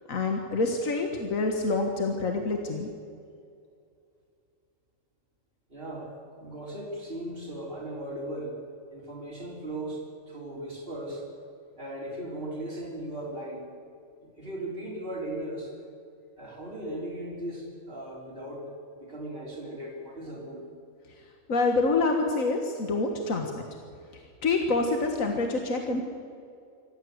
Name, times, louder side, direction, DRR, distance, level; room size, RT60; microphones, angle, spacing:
voice 1, 0.1-2.9 21.5-23.6 24.1-26.0, left 3 dB, 85° left, 3 dB, 1.9 m, -27 dB
voice 2, 5.7-8.6 8.9-11.3 11.8-13.6 14.2-15.7 16.4-18.7 19.0-20.6, right 1 dB, 45° right, -1 dB, 4.2 m, -37 dB
25.5 x 15.0 x 8.0 m, 2.4 s
omnidirectional pair, 1.4 m